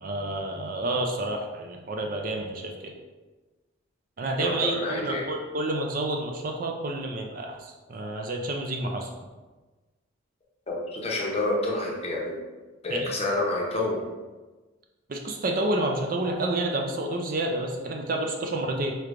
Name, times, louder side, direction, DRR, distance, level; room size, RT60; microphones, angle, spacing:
voice 1, 0.0-2.9 4.2-9.1 12.9-13.1 15.1-18.9, right 2 dB, 40° right, 2 dB, 0.4 m, -29 dB
voice 2, 4.4-5.2 10.7-12.4 12.8-14.1, left 2 dB, 30° left, -3 dB, 0.7 m, -28 dB
4.5 x 3.2 x 2.5 m, 1.2 s
head